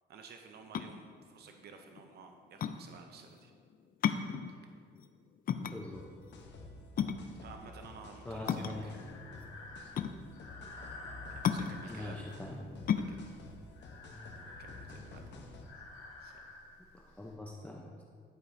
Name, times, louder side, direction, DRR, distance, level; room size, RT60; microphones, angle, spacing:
voice 1, 0.1-3.5 4.5-4.7 7.4-9.0 11.3-12.2 13.1-13.3 14.6-15.2 16.2-16.3, right 5 dB, 55° right, 4 dB, 0.6 m, -53 dB
sound 1, 0.6-14.9, left 8 dB, 45° left, 0.4 m, -36 dB
voice 2, 5.6-6.0 8.2-9.0 11.9-12.6 17.2-18.0, left 2 dB, 5° left, -2 dB, 0.6 m, -43 dB
sound 2, 5.9-15.6, left 2 dB, 65° left, 0.9 m, -51 dB
Breathing, 8.3-17.3, left 2 dB, 85° left, 1.3 m, -51 dB
11.5 x 4.8 x 2.7 m, 2.1 s
cardioid pair, 90°, 20 cm